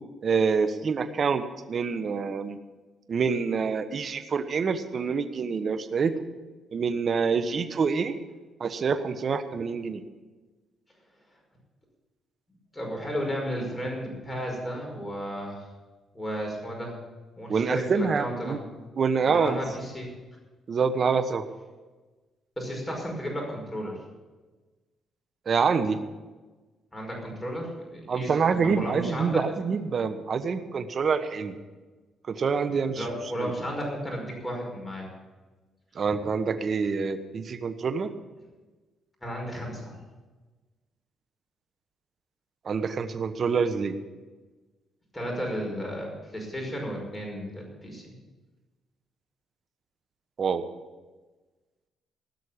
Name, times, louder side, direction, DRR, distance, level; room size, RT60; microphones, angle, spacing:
voice 1, 0.2-2.6 3.1-6.1 6.7-8.1 8.6-10.0 17.5-18.6 19.0-19.6 20.7-21.4 25.5-26.0 28.1-31.6 32.3-33.1 33.4-33.5 35.9-38.1 42.6-44.0 50.4-50.6, right 5 dB, 50° right, 9 dB, 1.1 m, -26 dB
voice 2, 12.7-15.7 16.1-17.0 17.4-18.6 19.2-20.1 22.6-24.0 26.9-29.4 32.9-35.1 39.2-40.0 45.1-48.1, equal, 10° left, 0 dB, 5.4 m, -33 dB
17.0 x 6.5 x 8.6 m, 1.3 s
cardioid pair, 90°, 0 cm